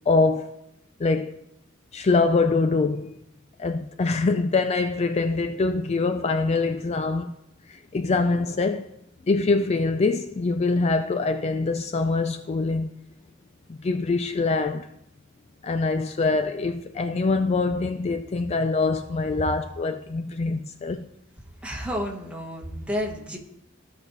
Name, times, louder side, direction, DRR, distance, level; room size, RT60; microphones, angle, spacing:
voice 1, 0.1-0.6 1.0-1.4 1.9-3.2 3.6-7.3 7.7-8.9 9.3-12.9 13.7-14.9 15.6-21.1, left 3 dB, 30° left, 0.4 m, -24 dB
voice 2, 21.6-23.4, equal, 5° right, 1.4 m, -31 dB
15.0 x 5.0 x 3.2 m
head